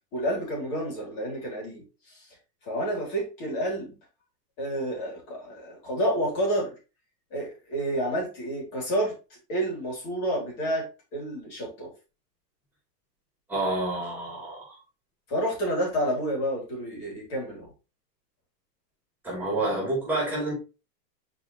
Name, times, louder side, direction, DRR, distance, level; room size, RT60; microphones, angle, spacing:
voice 1, 0.1-2.3 2.7-3.9 4.6-6.7 7.3-9.1 9.5-10.9 11.1-11.9 15.3-17.7, right 1 dB, 45° left, 3.9 m, -29 dB
voice 2, 13.5-14.7 19.2-20.5, right 2 dB, 5° right, 3.7 m, -28 dB
6.5 x 4.6 x 3.2 m
hypercardioid pair, 135°, 49 cm